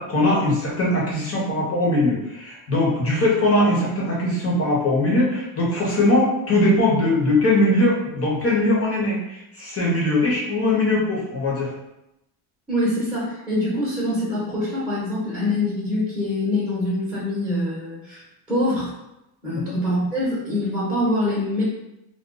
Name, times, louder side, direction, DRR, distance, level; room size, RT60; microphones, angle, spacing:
voice 1, 0.0-11.7 19.5-19.7, left 1 dB, 30° left, -5 dB, 1.1 m, -21 dB
voice 2, 12.7-18.9 19.4-21.6, left 1 dB, ahead, -9 dB, 1.1 m, -24 dB
2.4 x 2.2 x 3.9 m, 0.88 s
cardioid pair, 130°, 48 cm